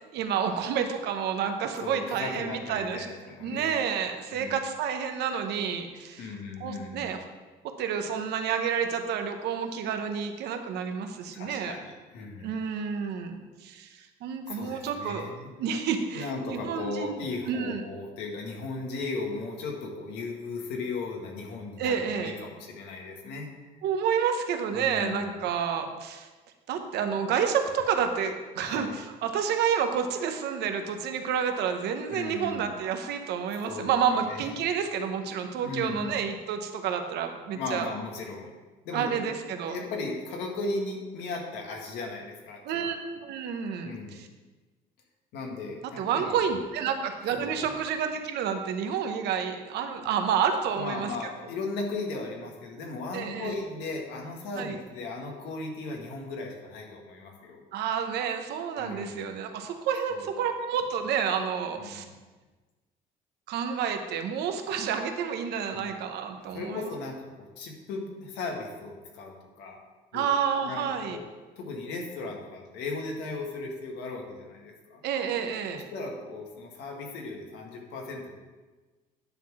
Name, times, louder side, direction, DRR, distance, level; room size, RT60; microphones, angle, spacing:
voice 1, 0.1-3.1 3.4-6.3 6.6-7.2 7.8-11.7 12.4-15.3 15.6-17.8 21.8-22.4 23.8-26.3 26.7-37.9 38.9-39.8 42.6-43.0 43.2-44.3 46.0-51.1 53.1-53.5 54.6-54.8 57.7-62.0 63.5-66.9 70.1-71.2 75.0-75.8, right 7 dB, 80° right, 6 dB, 0.9 m, -29 dB
voice 2, 1.8-3.8 4.3-4.5 6.2-7.2 11.3-12.5 14.5-15.5 16.1-23.5 24.8-25.3 28.6-28.9 32.1-32.7 33.6-33.9 34.2-34.5 35.6-36.2 37.5-38.5 38.8-39.3 39.7-42.9 43.8-44.2 45.3-46.3 47.4-47.6 50.7-57.6 58.8-59.2 60.1-60.3 61.8-62.1 65.7-66.0 66.5-69.8 70.1-70.3 70.6-71.3 71.6-75.0 75.7-78.4, left 3 dB, 90° left, 0 dB, 1.7 m, -37 dB
10.0 x 3.8 x 6.1 m, 1.3 s
cardioid pair, 110°, 17 cm